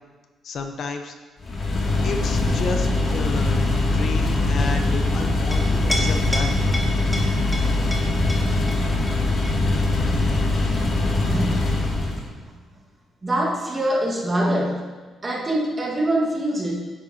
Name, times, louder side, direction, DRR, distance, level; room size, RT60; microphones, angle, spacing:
voice 1, 0.4-1.1 2.0-3.6 3.9-6.5, left 4 dB, 60° left, 5 dB, 0.9 m, -31 dB
sound 1, 1.4-12.3, left 2 dB, 40° left, 2.4 m, -22 dB
Chink clink, 5.3-12.4, left 1 dB, 15° left, 1.9 m, -33 dB
voice 2, 11.3-11.6 13.2-14.8 15.2-16.7, right 1 dB, 30° right, -2 dB, 1.7 m, -23 dB
9.9 x 9.8 x 2.9 m, 1.3 s
cardioid pair, 90°, 0 cm